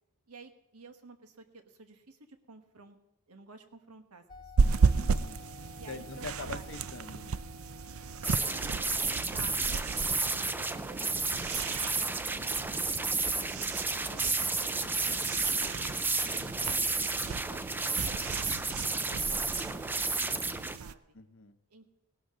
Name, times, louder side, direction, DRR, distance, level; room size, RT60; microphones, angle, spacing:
voice 1, 0.3-3.0 3.3-4.9 5.8-6.6 8.4-11.0 11.8-13.1 13.3-13.6 13.9-16.3 16.6-17.0 17.4-21.1 21.7-21.9, right 3 dB, 90° right, 7 dB, 1.4 m, -53 dB
sound 1, 4.3-8.8, left 6 dB, 20° left, 0.8 m, -53 dB
sound 2, 4.6-20.9, right 5 dB, 70° right, 0.5 m, -34 dB
voice 2, 5.0-5.4 5.9-7.4 21.1-21.6, left 4 dB, 55° left, 10 dB, 0.8 m, -44 dB
sound 3, 8.2-20.8, right 3 dB, 10° right, 0.4 m, -32 dB
18.0 x 11.5 x 3.7 m, 0.94 s
head